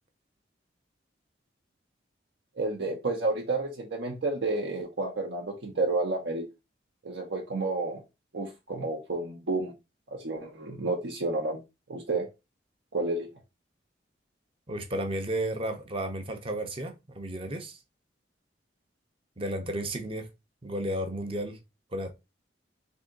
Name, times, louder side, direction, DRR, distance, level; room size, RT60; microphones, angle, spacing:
voice 1, 2.6-6.4 7.0-8.0 8.3-9.7 10.1-11.6 11.9-12.3 12.9-13.3, right 2 dB, 75° right, 0.8 m, -30 dB
voice 2, 14.7-17.8 19.4-20.3 20.6-21.6 21.9-22.1, right 1 dB, 30° right, 0.6 m, -33 dB
3.5 x 2.7 x 3.8 m
head